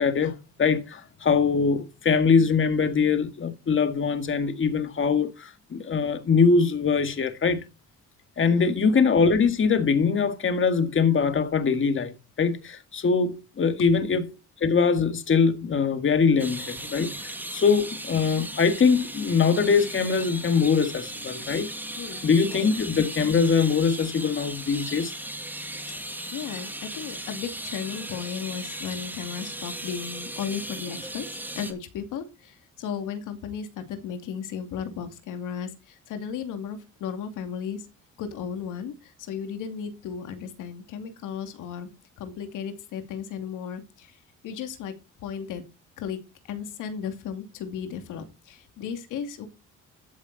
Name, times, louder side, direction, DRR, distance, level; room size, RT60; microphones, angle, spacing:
voice 1, 0.0-7.6 8.4-14.3 14.6-21.7 22.2-25.1, left 5 dB, 40° left, 1.9 m, -22 dB
voice 2, 8.5-8.9 13.9-14.1 18.3-18.6 22.0-22.7 25.9-31.3 31.5-37.8 38.2-41.9 42.2-44.2 44.4-44.9 45.2-45.6 46.0-46.2 46.5-49.5, left 7 dB, 90° left, 2.5 m, -35 dB
sound 1, 16.4-31.7, right 1 dB, 5° right, 2.5 m, -37 dB
14.0 x 8.0 x 4.1 m
cardioid pair, 90°, 30 cm